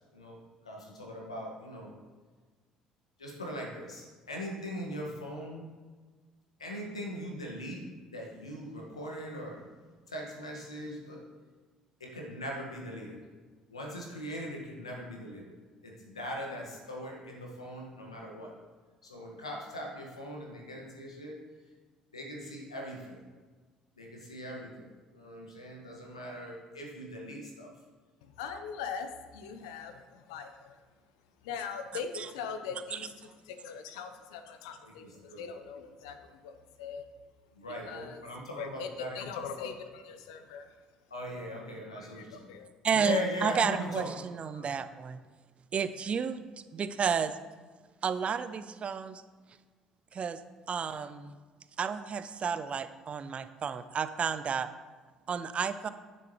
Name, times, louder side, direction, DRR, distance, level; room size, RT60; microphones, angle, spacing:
voice 1, 0.6-1.9 3.2-5.6 6.6-7.8 8.1-9.6 10.1-11.2 12.0-13.2 13.7-15.5 15.8-18.5 19.0-21.4 22.1-23.2 24.0-27.7 35.0-35.4 37.5-39.3 41.1-42.5 42.9-44.1 44.5-44.7 46.8-46.9, left 1 dB, 90° left, -1 dB, 1.8 m, -40 dB
voice 2, 28.2-30.8 31.4-33.1 33.4-37.0 37.9-38.2 38.6-38.9 39.1-40.7 42.0-42.7, left 6 dB, 70° left, 8 dB, 0.9 m, -41 dB
voice 3, 42.8-45.2 45.7-46.4 46.7-47.3 48.0-49.2 50.1-50.4 50.7-51.4 51.8-54.7 55.3-55.9, right 6 dB, 40° right, 12 dB, 0.6 m, -31 dB
10.5 x 10.0 x 3.2 m, 1.4 s
figure-of-eight pair, 50°, 3 cm